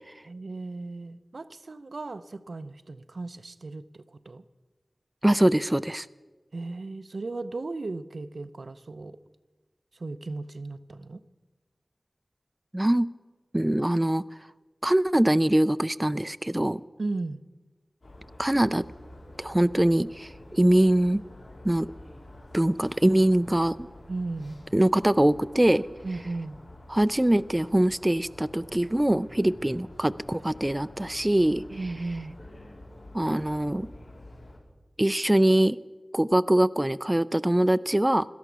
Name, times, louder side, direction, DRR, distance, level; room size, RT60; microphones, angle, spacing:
voice 1, 0.3-4.4 6.5-9.2 9.9-11.2 17.0-17.4 24.1-24.6 26.0-26.6 31.7-32.3, right 3 dB, 80° right, 12 dB, 0.6 m, -36 dB
voice 2, 5.2-6.1 12.7-13.1 13.5-14.2 14.8-16.8 18.4-18.9 19.4-21.2 21.6-21.9 22.5-23.9 24.7-25.8 26.9-31.6 33.1-33.9 35.0-35.8 36.1-38.3, right 1 dB, 20° right, 14 dB, 0.4 m, -23 dB
sound 1, 18.0-34.6, left 1 dB, 75° left, 3.8 m, -48 dB
17.5 x 13.0 x 6.2 m, 1.3 s
wide cardioid pair, 65°, 0 cm